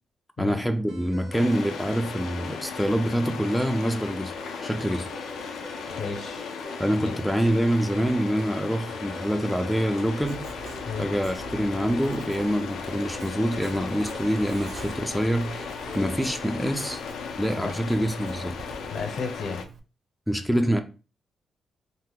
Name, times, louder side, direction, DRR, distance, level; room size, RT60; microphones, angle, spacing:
voice 1, 0.4-4.3 4.6-5.1 6.8-10.5 11.0-17.0 17.4-18.6 20.3-20.8, equal, ahead, 0.3 m, -26 dB
sound 1, 0.9-16.9, right 2 dB, 80° right, 0.8 m, -45 dB
sound 2, 1.3-19.6, left 6 dB, 85° left, 0.4 m, -37 dB
voice 2, 6.0-6.5 7.0-7.2 10.9-11.1 17.6-17.7 18.9-19.6, left 5 dB, 70° left, 0.8 m, -33 dB
Writing, 10.2-19.8, right 4 dB, 60° right, 0.5 m, -44 dB
2.8 x 2.1 x 3.5 m
cardioid pair, 100°, 0 cm